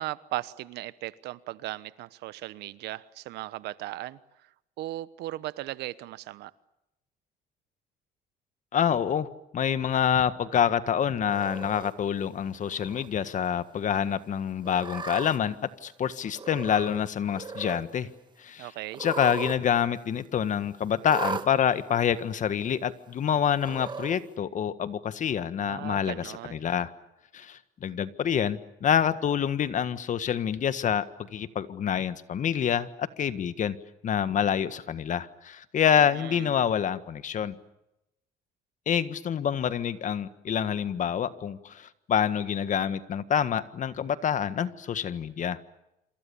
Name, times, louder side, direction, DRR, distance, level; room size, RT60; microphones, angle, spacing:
voice 1, 0.0-4.2 4.8-6.5 18.6-19.0 25.6-26.6 36.1-36.5, right 16 dB, 85° right, 1.1 m, -37 dB
voice 2, 8.7-18.1 18.4-18.7 19.0-26.9 27.3-33.7 34.0-37.5 38.9-45.6, left 8 dB, 50° left, 1.6 m, -27 dB
Cat, 11.3-11.9 12.6-13.1 13.4-13.5 14.6-15.4 16.3-17.0 17.3-17.8 18.9-19.6 19.8-19.9 21.0-21.5 22.4-22.5 23.6-24.2, right 4 dB, 25° right, 2.1 m, -36 dB
27.5 x 27.0 x 7.1 m
cardioid pair, 110°, 17 cm